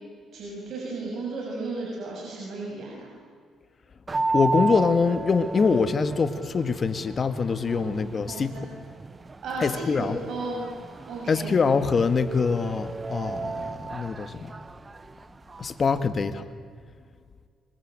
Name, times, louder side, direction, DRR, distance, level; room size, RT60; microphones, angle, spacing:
voice 1, 0.3-3.1 7.6-7.9 8.3-8.7 9.4-10.6 11.1-11.5, right 3 dB, 65° right, -2 dB, 6.9 m, -34 dB
sound 1, 4.1-16.0, right 3 dB, 25° right, 0.8 m, -34 dB
voice 2, 4.3-8.7 9.6-10.2 11.3-14.5 15.6-16.4, left 5 dB, 40° left, 10 dB, 1.8 m, -24 dB
25.5 x 24.0 x 9.0 m, 2.1 s
cardioid pair, 90°, 0 cm